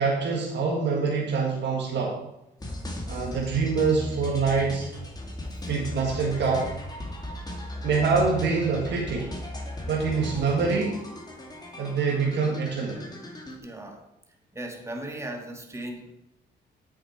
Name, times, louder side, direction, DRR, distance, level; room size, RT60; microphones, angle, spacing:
voice 1, 0.0-2.2 3.1-4.9 5.7-6.7 7.8-9.3 9.9-11.0 11.8-13.0, right 4 dB, 65° right, -1 dB, 1.6 m, -25 dB
sound 1, 2.6-13.6, left 1 dB, 20° left, 2.2 m, -37 dB
voice 2, 13.6-14.0 14.5-16.1, right 1 dB, 15° right, 3 dB, 1.6 m, -37 dB
8.0 x 6.5 x 4.6 m, 0.86 s
cardioid pair, 80°, 19 cm